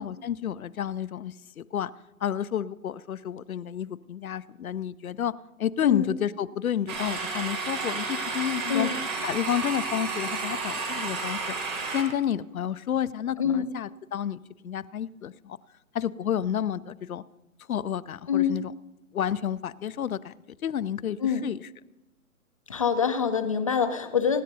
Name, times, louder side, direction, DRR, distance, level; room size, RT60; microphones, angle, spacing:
voice 1, 0.0-1.9 2.2-5.3 5.6-8.9 9.2-11.6 11.9-15.6 15.9-17.2 17.7-18.7 19.1-20.3 20.6-21.7, left 9 dB, 75° left, 17 dB, 0.7 m, -30 dB
sound 1, 6.9-12.0, right 4 dB, 10° right, 1.1 m, -32 dB
voice 2, 18.3-18.6 21.2-21.5 22.7-24.4, left 7 dB, 25° left, 8 dB, 0.5 m, -25 dB
24.5 x 10.5 x 2.7 m, 1.0 s
hypercardioid pair, 150°, 43 cm